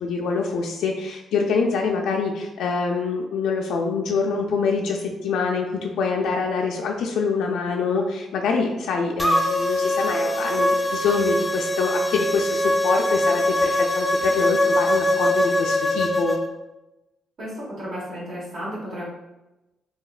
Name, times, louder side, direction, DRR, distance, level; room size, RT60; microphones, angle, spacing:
voice 1, 0.0-16.4, left 4 dB, 80° left, 0 dB, 0.3 m, -25 dB
sound 1, 9.2-16.4, left 1 dB, 10° left, 0.4 m, -22 dB
voice 2, 17.4-19.1, equal, 60° right, -7 dB, 1.2 m, -33 dB
3.1 x 2.8 x 2.4 m, 0.99 s
cardioid pair, 90°, 0 cm